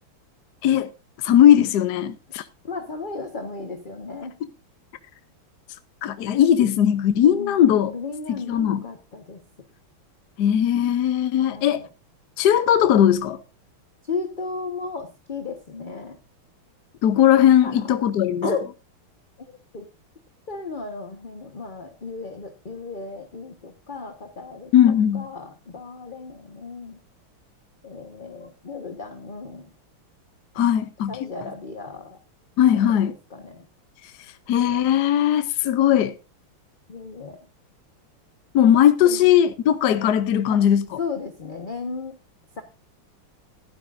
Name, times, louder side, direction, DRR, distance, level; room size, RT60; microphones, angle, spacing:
voice 1, 1.2-2.5 6.0-7.9 8.3-8.8 10.4-11.8 12.4-13.4 17.0-18.5 24.7-25.3 30.6-31.2 32.6-33.1 34.0-36.2 38.5-41.0, left 10 dB, 65° left, 1.1 m, -19 dB
voice 2, 2.6-4.4 7.2-7.6 7.9-9.4 11.4-11.8 14.0-16.2 17.6-17.9 18.4-18.7 19.4-19.9 20.5-27.0 27.8-29.7 30.5-30.6 31.1-32.2 33.3-33.6 36.9-37.4 39.0-39.3 40.5-40.6 41.0-42.2 42.6-42.7, left 4 dB, 30° left, 1.1 m, -34 dB
15.5 x 12.0 x 2.6 m
omnidirectional pair, 2.4 m